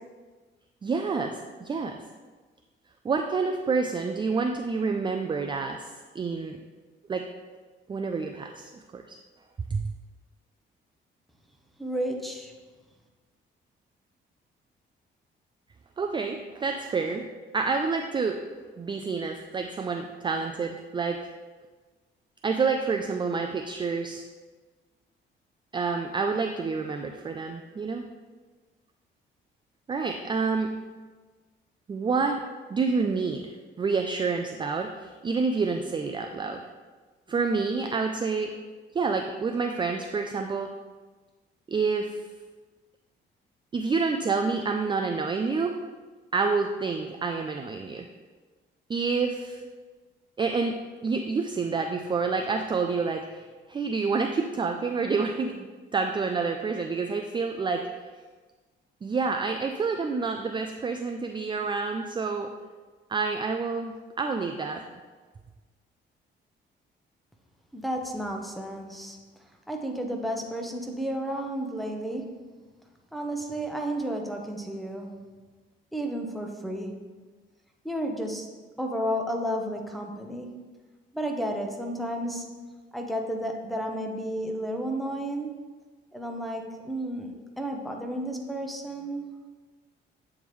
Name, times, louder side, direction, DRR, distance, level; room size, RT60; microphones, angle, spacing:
voice 1, 0.8-2.0 3.0-6.6 7.1-7.2 7.9-9.2 9.7-9.9 16.0-17.2 17.5-18.3 18.8-21.2 22.4-24.2 25.7-28.0 29.9-30.7 31.9-32.4 32.7-33.5 33.8-36.6 37.3-38.5 38.9-40.7 41.7-42.2 43.7-45.8 46.3-48.1 48.9-49.6 50.4-55.7 55.9-57.8 59.0-62.5 63.1-64.8, right 4 dB, 25° right, 4 dB, 0.4 m, -28 dB
voice 2, 11.8-12.5 67.7-69.2 69.7-72.4 73.1-75.2 75.9-77.1 77.8-78.5 78.8-80.7 81.1-85.6 86.1-89.3, right 1 dB, ahead, 1 dB, 0.8 m, -32 dB
8.3 x 3.6 x 3.1 m, 1.4 s
cardioid pair, 90°, 20 cm